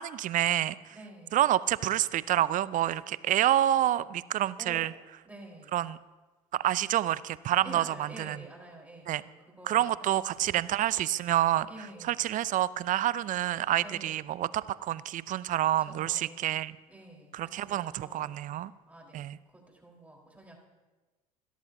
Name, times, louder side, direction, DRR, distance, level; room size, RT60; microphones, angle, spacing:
voice 1, 0.0-0.9 1.3-4.9 5.7-6.0 6.5-7.8 8.2-8.4 9.1-9.2 9.7-11.7 12.1-16.7 17.3-18.7 19.1-19.4, right 12 dB, 45° right, 19 dB, 0.5 m, -28 dB
voice 2, 0.9-1.4 4.6-5.0 5.2-5.8 7.6-10.7 11.7-12.3 13.8-14.4 15.8-16.6 16.9-18.4 18.9-19.2 19.5-20.6, right 1 dB, 10° right, -1 dB, 4.1 m, -49 dB
27.5 x 13.5 x 2.7 m, 1.2 s
hypercardioid pair, 65°, 19 cm